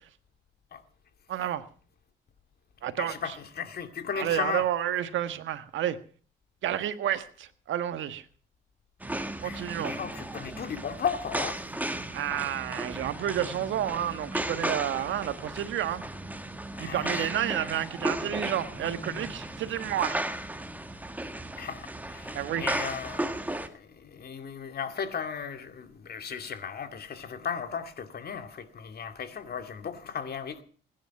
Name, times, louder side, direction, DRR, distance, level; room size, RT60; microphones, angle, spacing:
voice 1, 1.3-1.6 2.8-3.4 4.1-6.0 6.6-8.2 9.4-10.0 12.1-16.0 16.8-20.2 22.3-22.7, right 11 dB, 75° right, 1.4 m, -30 dB
voice 2, 3.0-4.6 9.4-11.6 16.7-17.3 21.6-30.6, left 7 dB, 50° left, 2.4 m, -36 dB
sound 1, 9.0-23.7, right 1 dB, 10° right, 1.8 m, -35 dB
21.0 x 10.5 x 6.0 m
cardioid pair, 90°, 20 cm